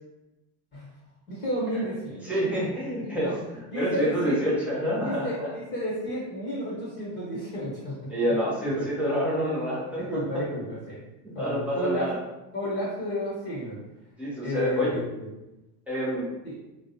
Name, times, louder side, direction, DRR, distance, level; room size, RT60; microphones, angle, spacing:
voice 1, 1.3-2.4 3.0-4.4 5.0-8.1 8.8-8.9 9.9-11.0 11.3-12.1 12.5-13.8 14.4-15.3 16.4-16.5, equal, 20° left, -6 dB, 1.1 m, -32 dB
voice 2, 2.2-3.3 3.7-5.5 8.1-10.2 11.2-12.1 14.2-14.9 15.9-16.3, equal, 5° right, -7 dB, 0.3 m, -27 dB
2.3 x 2.1 x 2.7 m, 0.98 s
hypercardioid pair, 115°, 48 cm